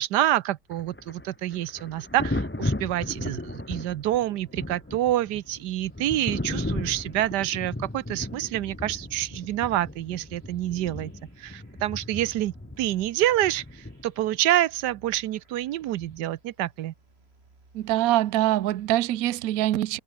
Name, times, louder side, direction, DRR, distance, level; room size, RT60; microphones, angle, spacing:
voice 1, 0.0-11.1 11.4-16.9, right 13 dB, 85° right, 1.3 m, -27 dB
Thunder, 0.7-14.4 16.0-16.2, left 1 dB, 10° left, 0.9 m, -35 dB
sound 1, 4.3-18.9, right 3 dB, 35° right, 3.1 m, -59 dB
voice 2, 17.7-20.0, right 14 dB, 65° right, 1.1 m, -24 dB
omnidirectional pair, 1.8 m